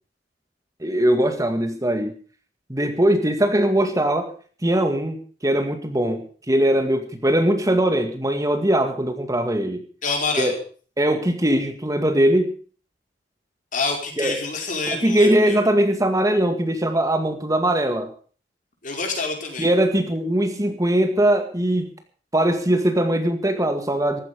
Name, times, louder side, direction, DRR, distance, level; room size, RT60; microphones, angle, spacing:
voice 1, 0.8-2.1 2.7-4.3 4.6-5.2 5.4-9.8 10.4-10.6 11.0-12.5 14.2-14.4 14.9-18.1 19.6-21.9 22.3-24.2, right 1 dB, 20° right, 6 dB, 2.0 m, -21 dB
voice 2, 10.0-10.6 13.7-15.6 18.8-19.7, left 3 dB, 45° left, 2 dB, 5.0 m, -27 dB
15.5 x 14.0 x 5.3 m, 0.42 s
head